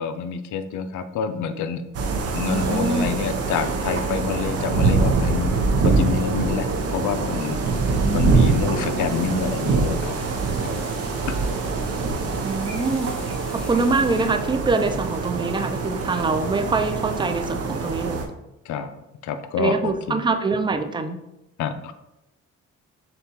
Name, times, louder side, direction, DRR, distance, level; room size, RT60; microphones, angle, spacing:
voice 1, 0.0-1.8 2.3-5.5 5.8-7.8 8.1-10.1 10.6-10.8 11.3-11.4 18.7-18.9 19.2-20.2 21.6-21.9, left 6 dB, 75° left, 9 dB, 0.5 m, -27 dB
sound 1, 1.9-18.3, right 4 dB, 55° right, 0.7 m, -24 dB
voice 2, 2.5-3.1 8.0-8.5 12.4-13.1 13.5-18.3 19.6-21.2, right 3 dB, 15° right, 7 dB, 0.4 m, -24 dB
sound 2, 9.1-14.3, equal, 5° left, 0.9 m, -45 dB
6.6 x 2.3 x 2.9 m, 0.90 s
cardioid pair, 90°, 30 cm